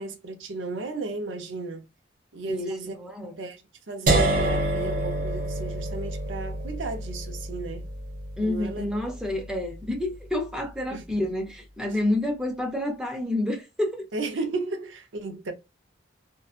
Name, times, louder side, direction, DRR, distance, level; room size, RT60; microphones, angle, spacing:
voice 1, 0.0-1.8 2.3-3.0 3.4-7.9 8.4-8.9 10.9-11.0 14.1-15.5, right 3 dB, 85° right, 0.7 m, -34 dB
voice 2, 2.5-3.3 8.4-14.1, left 1 dB, 5° right, 0.6 m, -29 dB
sound 1, 4.1-10.0, right 2 dB, 45° right, 0.6 m, -28 dB
2.7 x 2.2 x 2.4 m
head